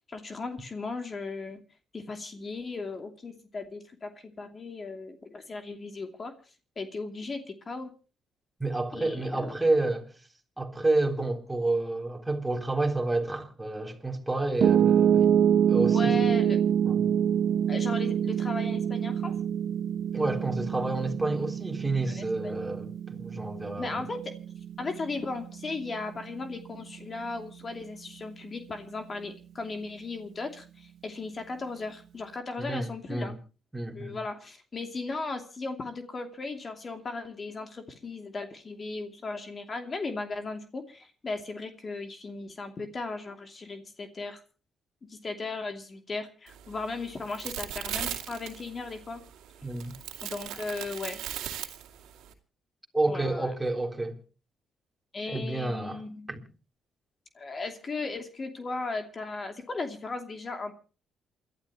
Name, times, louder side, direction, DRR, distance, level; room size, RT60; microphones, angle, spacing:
voice 1, 0.1-1.6 1.9-6.3 6.8-7.9 8.9-9.6 15.9-16.6 17.7-19.3 22.1-22.6 23.8-24.4 24.8-33.3 33.9-44.4 45.1-49.2 50.2-51.2 53.1-53.5 55.1-56.3 57.3-60.7, left 3 dB, 35° left, 2.7 m, -36 dB
voice 2, 8.6-10.1 10.6-15.4 15.7-16.1 16.9-17.0 20.1-24.0 32.6-33.4 33.7-34.2 49.6-49.9 52.9-54.2 55.3-56.0 56.3-56.4, right 2 dB, 10° right, 3.6 m, -29 dB
Piano, 14.6-26.8, right 9 dB, 70° right, 0.8 m, -26 dB
sound 1, 46.5-52.3, right 11 dB, 90° right, 2.6 m, -39 dB
28.0 x 12.5 x 3.0 m
cardioid pair, 90°, 0 cm